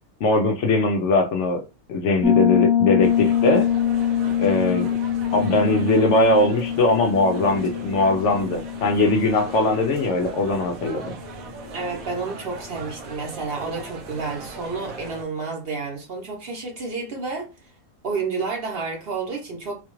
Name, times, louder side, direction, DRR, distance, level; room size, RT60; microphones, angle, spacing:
voice 1, 0.2-1.6 1.9-3.7 4.4-4.9 5.3-11.1, left 2 dB, 65° left, 0.8 m, -20 dB
Piano, 2.2-10.7, left 10 dB, 5° right, 0.4 m, -24 dB
sound 1, 3.0-15.2, right 3 dB, 75° right, 1.1 m, -39 dB
voice 2, 11.7-17.5 18.0-19.8, right 4 dB, 50° right, 0.9 m, -30 dB
4.0 x 2.3 x 3.0 m
omnidirectional pair, 1.5 m